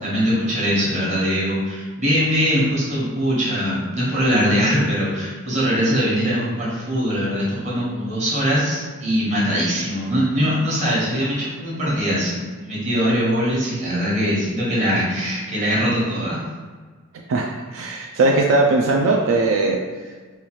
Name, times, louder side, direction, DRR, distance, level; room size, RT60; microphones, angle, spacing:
voice 1, 0.0-16.4, equal, 35° right, -7 dB, 1.1 m, -21 dB
voice 2, 17.3-19.8, right 2 dB, 70° right, 0 dB, 0.3 m, -19 dB
4.3 x 2.3 x 3.0 m, 1.4 s
head